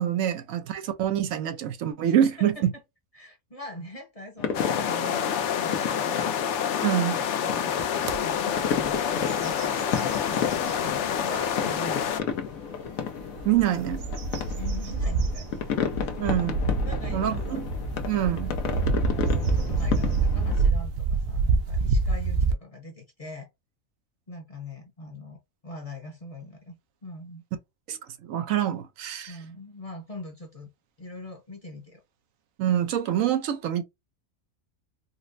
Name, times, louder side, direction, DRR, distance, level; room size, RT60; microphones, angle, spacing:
voice 1, 0.0-2.7 6.8-7.2 13.4-14.0 16.2-16.7 17.1-17.7 18.1-18.5 27.9-29.4 32.6-33.8, right 10 dB, 80° right, 1.0 m, -26 dB
voice 2, 2.0-2.8 3.1-12.2 14.6-16.2 16.8-17.6 18.8-23.5 24.3-26.7 27.0-27.4 29.3-30.7 31.0-32.0, left 1 dB, 35° left, 0.7 m, -42 dB
sound 1, 4.4-20.7, left 7 dB, 90° left, 1.1 m, -33 dB
sound 2, 4.5-12.2, left 8 dB, 65° left, 0.8 m, -27 dB
sound 3, 8.0-8.2 8.7-8.9 9.3-10.8 11.4-11.5 13.2-22.5, right 3 dB, 60° right, 0.7 m, -27 dB
4.1 x 2.0 x 2.5 m
omnidirectional pair, 1.4 m